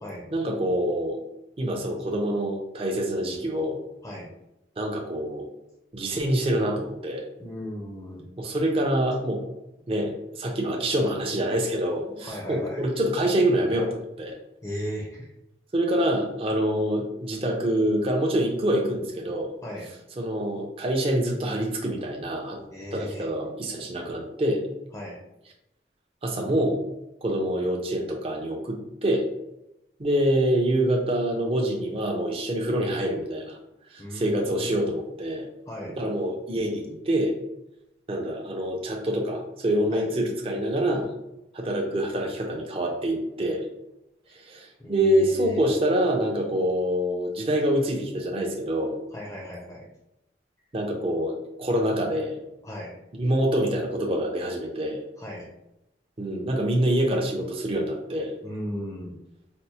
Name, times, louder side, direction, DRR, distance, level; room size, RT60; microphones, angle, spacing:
voice 1, 0.3-1.2 1.6-3.8 4.8-5.5 5.9-7.2 8.4-9.4 9.9-14.4 15.7-19.5 20.2-22.6 22.9-24.6 26.2-26.8 27.2-29.3 30.0-33.6 33.9-35.5 36.0-37.4 38.1-41.1 41.5-43.6 44.3-49.0 50.7-52.3 53.2-55.0 56.2-58.3, right 1 dB, 30° right, 0 dB, 0.5 m, -26 dB
voice 2, 7.4-8.3 12.0-12.8 14.6-15.3 19.6-19.9 22.7-23.3 23.8-23.9 24.9-25.2 34.0-34.8 35.7-35.9 39.9-40.1 44.3-44.4 44.8-45.6 49.1-49.9 52.6-53.0 55.2-55.5 58.4-59.2, equal, 20° left, -2 dB, 0.5 m, -36 dB
4.3 x 2.0 x 2.8 m, 0.88 s
head